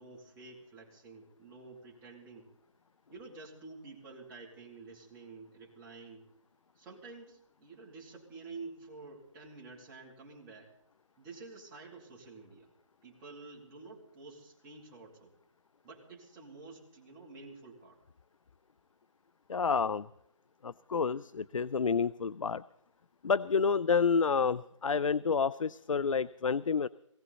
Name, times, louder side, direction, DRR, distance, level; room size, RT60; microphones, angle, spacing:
voice 1, 0.0-2.5 3.1-6.3 6.7-10.7 11.2-12.7 13.0-15.3 15.8-18.0, right 3 dB, 15° right, -3 dB, 2.8 m, -50 dB
voice 2, 19.5-20.1 20.6-22.6 23.2-26.9, left 5 dB, 80° left, 19 dB, 0.5 m, -29 dB
18.5 x 17.0 x 4.1 m, 0.75 s
figure-of-eight pair, 160°, 17 cm